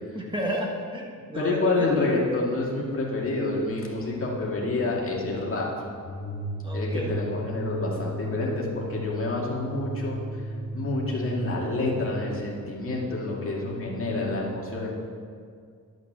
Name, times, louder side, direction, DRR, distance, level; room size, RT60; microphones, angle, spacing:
voice 1, 0.1-2.1 6.6-7.1, equal, 15° right, -1 dB, 1.3 m, -32 dB
voice 2, 1.3-5.7 6.7-10.4 10.7-14.9, left 2 dB, 40° left, -3 dB, 2.1 m, -28 dB
sound 1, 6.0-11.6, equal, 25° left, 0.9 m, -34 dB
11.5 x 6.3 x 6.7 m, 2.1 s
wide cardioid pair, 165°, 34 cm